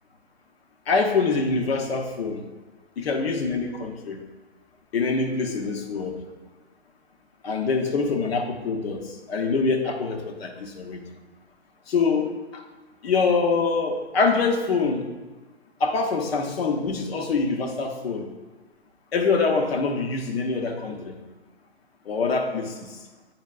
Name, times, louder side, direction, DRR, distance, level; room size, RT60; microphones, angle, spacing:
voice 1, 0.9-2.4 3.0-4.2 4.9-6.1 7.4-9.0 9.3-11.0 11.9-12.6 13.0-15.1 15.8-18.3 19.1-21.2 22.1-22.9, left 4 dB, 65° left, 2 dB, 1.1 m, -24 dB
9.1 x 4.6 x 2.5 m, 1.2 s
hypercardioid pair, 130°, 33 cm